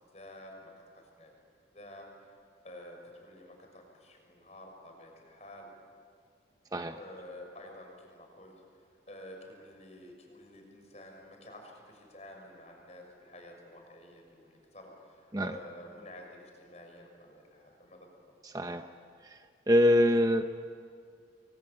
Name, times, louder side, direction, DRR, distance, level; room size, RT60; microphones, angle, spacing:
voice 1, 0.1-1.3 1.7-2.1 2.6-5.7 6.9-8.5 9.1-18.1, left 1 dB, 40° left, 2 dB, 6.2 m, -50 dB
voice 2, 18.4-18.9 19.2-19.4 19.7-20.5, left 1 dB, 20° right, 7 dB, 0.7 m, -25 dB
29.0 x 23.0 x 8.6 m, 2.2 s
head